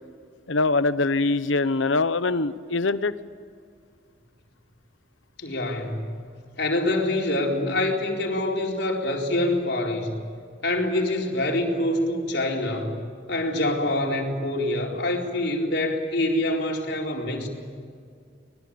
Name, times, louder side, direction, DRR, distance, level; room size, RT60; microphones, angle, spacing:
voice 1, 0.5-3.2, left 3 dB, 80° left, 14 dB, 1.0 m, -23 dB
voice 2, 5.4-6.1 6.6-10.2 10.6-13.0 13.3-17.5, left 1 dB, 60° left, 0 dB, 4.2 m, -25 dB
25.0 x 21.5 x 8.7 m, 2.2 s
head